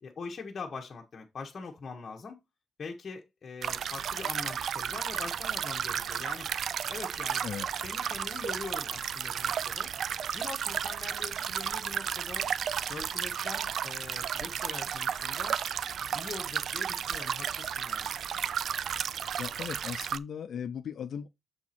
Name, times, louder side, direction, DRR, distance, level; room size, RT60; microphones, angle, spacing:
voice 1, 0.0-2.4 2.8-6.5 6.9-7.4 7.8-9.9 10.3-12.5 12.8-15.6 16.0-18.1, left 4 dB, 40° left, 1.2 m, -43 dB
sound 1, 3.6-20.2, right 8 dB, 60° right, 0.3 m, -33 dB
voice 2, 7.4-7.8 19.4-21.3, left 8 dB, 60° left, 0.5 m, -38 dB
7.2 x 4.6 x 4.3 m
wide cardioid pair, 160°, 0 cm